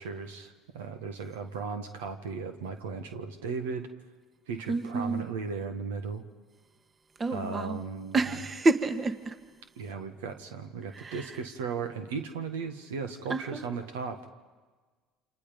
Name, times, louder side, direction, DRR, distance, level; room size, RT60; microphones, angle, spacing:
voice 1, 0.0-3.9 4.5-6.2 7.3-8.2 9.8-14.3, right 5 dB, 85° right, 1.5 m, -36 dB
voice 2, 4.7-5.2 7.2-7.8 8.1-9.4 10.9-11.4 13.3-13.7, right 2 dB, 30° right, 1.5 m, -29 dB
29.0 x 26.5 x 5.2 m
hypercardioid pair, 75°, 0 cm